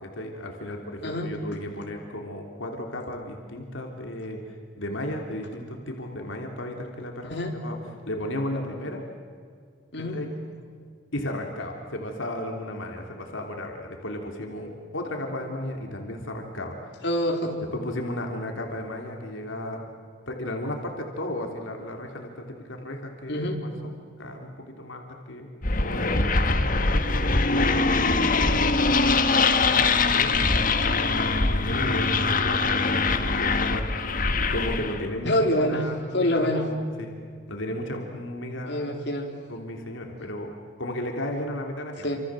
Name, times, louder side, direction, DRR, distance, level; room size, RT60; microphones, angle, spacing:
voice 1, 0.0-7.8 8.1-9.1 10.1-10.3 11.1-17.0 17.7-19.9 20.3-23.9 24.2-25.5 25.8-27.2 28.3-34.1 34.4-37.1 37.5-38.9 39.5-42.1, left 1 dB, 85° left, 2 dB, 3.4 m, -34 dB
voice 2, 17.0-17.7 23.3-23.6 35.2-35.9 36.1-36.7 38.7-39.3 42.0-42.2, left 1 dB, 60° left, 1 dB, 3.8 m, -26 dB
sound 1, 25.6-35.0, left 3 dB, 45° left, 1.6 m, -23 dB
28.5 x 27.0 x 7.7 m, 2.1 s
head